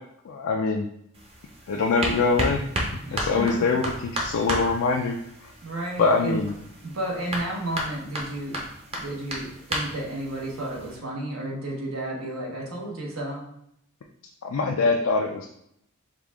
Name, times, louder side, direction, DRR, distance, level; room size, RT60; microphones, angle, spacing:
voice 1, 0.2-0.9 1.7-2.6 3.1-5.2 6.0-6.5 14.4-15.5, left 4 dB, 70° left, 2 dB, 0.4 m, -23 dB
sound 1, 1.1-11.0, right 1 dB, 30° right, 0.8 m, -34 dB
voice 2, 3.0-3.7 5.6-6.5 6.8-8.7 9.0-13.4, right 1 dB, 75° right, -3 dB, 1.2 m, -32 dB
5.1 x 2.4 x 3.5 m, 0.75 s
head